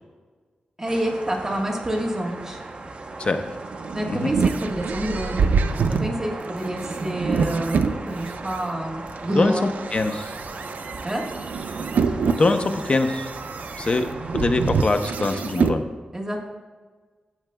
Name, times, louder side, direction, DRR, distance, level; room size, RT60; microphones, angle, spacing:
voice 1, 0.8-2.6 3.9-5.5 5.9-9.7 11.0-11.2 16.1-16.4, right 1 dB, 15° right, -1 dB, 1.4 m, -28 dB
sound 1, 0.9-14.7, right 2 dB, 45° right, 0.8 m, -37 dB
sound 2, 3.5-8.6 9.2-15.8, right 5 dB, 80° right, 0.4 m, -26 dB
voice 2, 9.9-10.3 12.3-13.3 13.8-14.1 14.3-15.8, left 3 dB, 40° left, 7 dB, 0.6 m, -23 dB
14.0 x 7.2 x 2.2 m, 1.4 s
wide cardioid pair, 120°, 3 cm